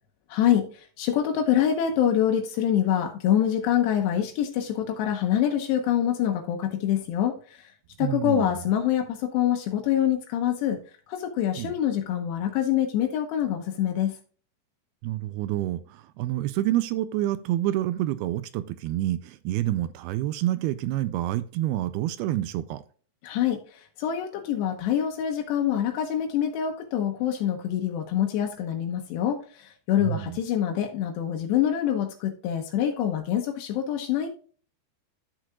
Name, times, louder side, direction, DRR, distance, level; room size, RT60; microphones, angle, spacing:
voice 1, 0.3-7.7 8.0-10.8 11.1-14.2 23.2-34.3, left 10 dB, 85° left, 3.1 m, -25 dB
voice 2, 8.0-8.6 11.6-11.7 15.0-22.8 30.0-30.4, right 14 dB, 85° right, 2.3 m, -28 dB
12.0 x 6.6 x 2.4 m
omnidirectional pair, 4.9 m